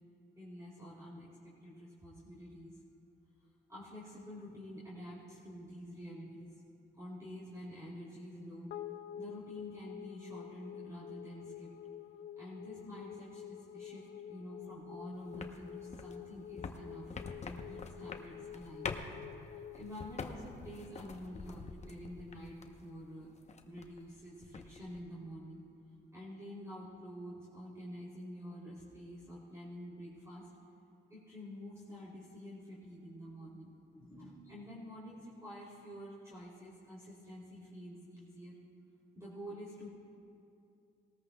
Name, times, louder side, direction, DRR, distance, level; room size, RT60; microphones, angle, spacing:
voice 1, 0.3-2.8 3.7-6.6 6.9-8.7 9.2-11.7 12.4-17.2 17.4-18.9 19.5-23.3 23.6-25.6 26.1-30.5 31.1-38.6 39.1-39.9, equal, 15° right, -8 dB, 2.9 m, -48 dB
sound 1, 8.7-21.2, left 10 dB, 65° left, 0.4 m, -49 dB
sound 2, 15.3-22.9 23.2-24.1 24.4-25.0, left 4 dB, 35° left, 0.8 m, -45 dB
19.0 x 13.5 x 2.2 m, 2.6 s
cardioid pair, 90°, 20 cm